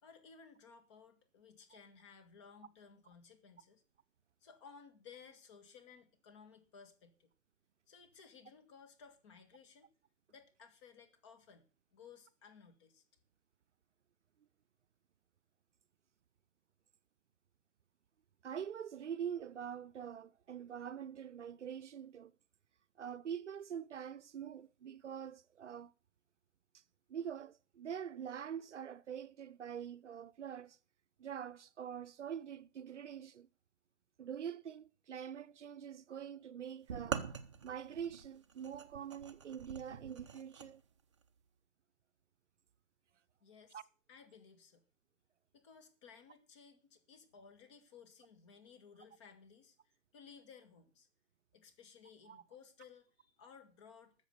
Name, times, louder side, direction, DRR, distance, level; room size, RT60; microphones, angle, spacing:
voice 1, 0.0-3.8 4.4-7.3 7.9-9.9 10.3-11.7 11.9-13.0 43.4-43.8 44.1-44.8 45.5-51.1 51.5-54.1, left 6 dB, 25° left, 1.6 m, -59 dB
voice 2, 18.4-22.3 23.0-25.9 26.7-26.8 27.1-30.8 31.2-33.5 34.2-37.2 37.6-40.8 43.7-43.8 52.3-52.4, right 8 dB, 65° right, 0.7 m, -45 dB
sound 1, 36.9-40.7, right 7 dB, 25° right, 0.7 m, -44 dB
13.5 x 7.4 x 6.7 m
hypercardioid pair, 160°, 38 cm